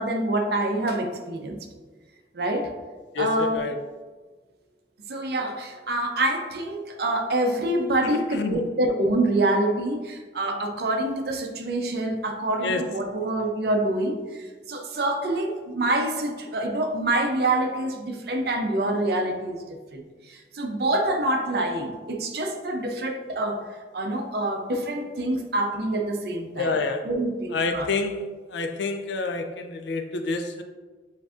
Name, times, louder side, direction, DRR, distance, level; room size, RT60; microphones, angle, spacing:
voice 1, 0.0-1.6 2.3-2.7 3.2-3.6 5.1-19.6 19.9-20.0 20.3-23.7 23.9-26.7 27.0-27.9, right 1 dB, 60° right, 3 dB, 0.6 m, -26 dB
voice 2, 3.1-3.8 8.0-8.6 12.6-12.8 26.5-27.1 27.5-28.2 28.5-30.6, left 3 dB, 75° left, 6 dB, 0.4 m, -28 dB
7.1 x 2.6 x 2.4 m, 1.3 s
head